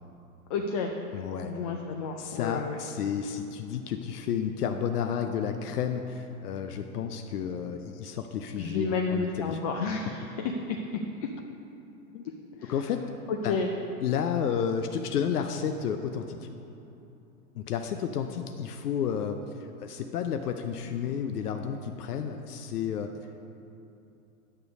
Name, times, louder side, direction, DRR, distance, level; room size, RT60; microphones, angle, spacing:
voice 1, 0.5-0.9 1.4-2.8 8.6-10.2 13.5-13.7, left 4 dB, 25° left, 2 dB, 0.3 m, -30 dB
voice 2, 1.1-1.5 2.2-9.6 12.1-12.3 12.6-13.1 13.4-13.6 14.0-16.5 17.5-23.4, left 7 dB, 85° left, 6 dB, 0.7 m, -31 dB
9.8 x 6.6 x 5.2 m, 2.9 s
hypercardioid pair, 135°, 45 cm